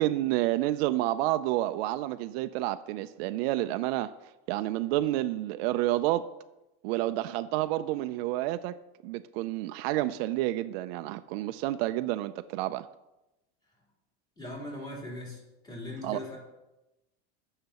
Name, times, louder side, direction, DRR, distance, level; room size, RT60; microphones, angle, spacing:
voice 1, 0.0-4.1 4.5-6.3 6.8-8.8 9.0-12.9 16.0-16.2, right 15 dB, 70° right, 0.5 m, -29 dB
voice 2, 14.4-16.4, left 1 dB, 15° left, 3.5 m, -40 dB
17.0 x 6.6 x 2.9 m
supercardioid pair, 135°, 31 cm